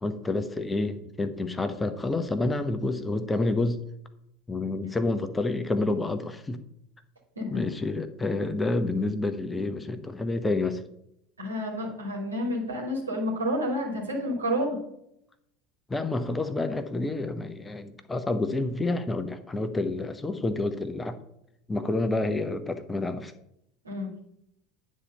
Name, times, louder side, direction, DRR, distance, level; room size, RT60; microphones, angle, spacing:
voice 1, 0.0-3.8 4.5-6.6 7.5-10.8 15.9-21.2 21.7-23.3, left 2 dB, 15° left, 9 dB, 0.8 m, -28 dB
voice 2, 11.4-14.8 23.8-24.1, equal, 80° right, -1 dB, 2.6 m, -29 dB
9.8 x 4.2 x 6.7 m, 0.77 s
figure-of-eight pair, 75°, 0 cm